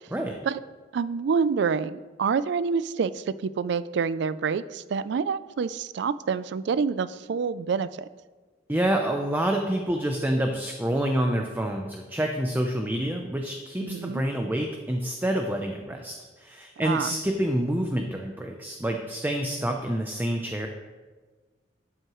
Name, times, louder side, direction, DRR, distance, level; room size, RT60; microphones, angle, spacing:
voice 1, 0.9-8.1 13.8-14.2 16.8-17.2, right 5 dB, 65° right, 16 dB, 0.3 m, -27 dB
voice 2, 8.7-20.7, right 1 dB, 10° right, 2 dB, 0.5 m, -27 dB
12.5 x 7.7 x 3.1 m, 1.3 s
head